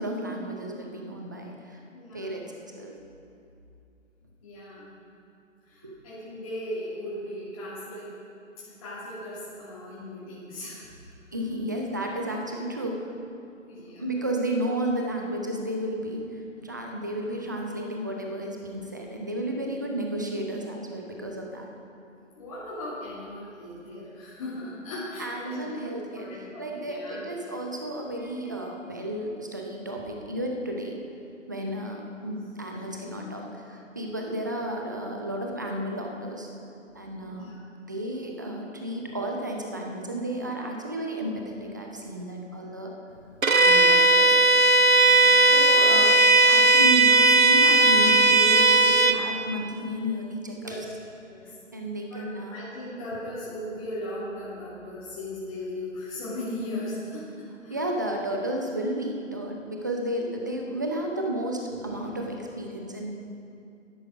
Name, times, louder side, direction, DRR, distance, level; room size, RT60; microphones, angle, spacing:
voice 1, 0.0-1.8 2.1-3.0 5.8-5.9 11.3-13.1 14.0-21.7 25.2-26.3 26.6-31.0 31.5-36.5 36.9-37.5 37.9-42.9 43.5-44.4 45.5-46.2 46.5-50.8 51.7-52.6 57.7-63.1, right 1 dB, 15° right, 1 dB, 0.6 m, -32 dB
voice 2, 1.9-2.4 4.4-4.9 5.6-8.1 8.8-10.8 13.7-14.0 22.3-27.2 37.2-37.6 45.0-45.5 50.6-50.8 51.3-51.5 52.1-57.8, left 1 dB, 25° left, -11 dB, 2.7 m, -38 dB
Bowed string instrument, 43.4-49.2, right 2 dB, 90° right, 0.9 m, -17 dB
12.5 x 10.5 x 5.0 m, 2.6 s
figure-of-eight pair, 145°, 40 cm